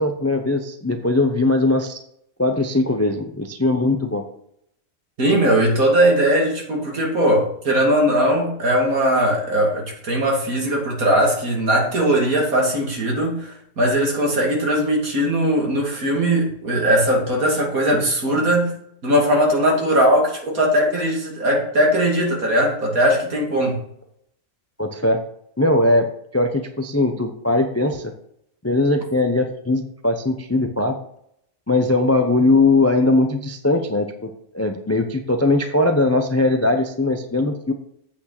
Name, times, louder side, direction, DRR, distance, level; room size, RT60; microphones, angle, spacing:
voice 1, 0.0-2.0 2.4-4.2 24.8-25.2 25.6-28.1 28.6-30.9 31.7-37.7, left 2 dB, 20° left, 5 dB, 0.5 m, -20 dB
voice 2, 5.2-18.7 19.0-23.8, right 1 dB, 65° right, -1 dB, 3.0 m, -19 dB
8.4 x 6.1 x 6.0 m, 0.72 s
omnidirectional pair, 1.6 m